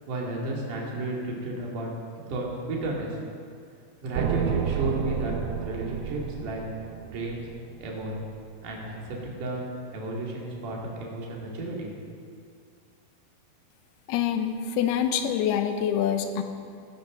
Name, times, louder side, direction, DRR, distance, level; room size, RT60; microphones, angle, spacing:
voice 1, 0.1-1.9 2.3-3.2 4.0-6.6 7.0-7.4 7.8-8.2 8.6-9.6 9.9-12.2, right 2 dB, 55° right, -3 dB, 3.8 m, -32 dB
sound 1, 4.1-8.3, right 9 dB, 85° right, 2.8 m, -31 dB
voice 2, 14.1-16.4, left 9 dB, 80° left, 7 dB, 2.9 m, -26 dB
19.0 x 9.8 x 6.5 m, 2.3 s
omnidirectional pair, 4.6 m